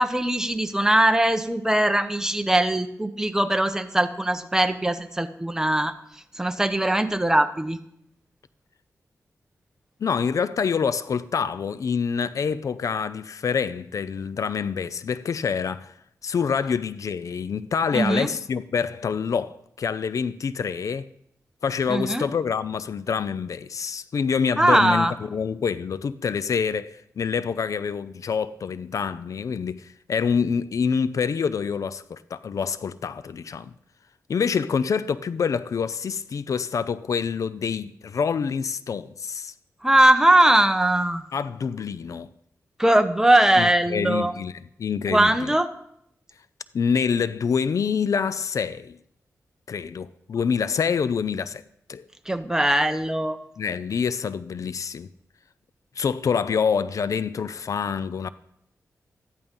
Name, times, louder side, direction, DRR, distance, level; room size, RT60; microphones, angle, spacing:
voice 1, 0.0-5.9 6.3-7.8 17.9-18.3 21.9-22.2 24.6-25.1 39.8-41.2 42.8-44.3 45.1-45.7 52.3-53.4, right 1 dB, 10° right, 1.1 m, -20 dB
voice 2, 10.0-15.9 16.2-21.1 21.6-33.7 34.3-39.5 41.3-42.3 43.6-45.5 46.7-49.0 49.7-51.6 51.9-52.1 53.6-55.1 56.0-58.3, left 6 dB, 70° left, 0.5 m, -26 dB
14.0 x 11.0 x 5.4 m
cardioid pair, 75°, 6 cm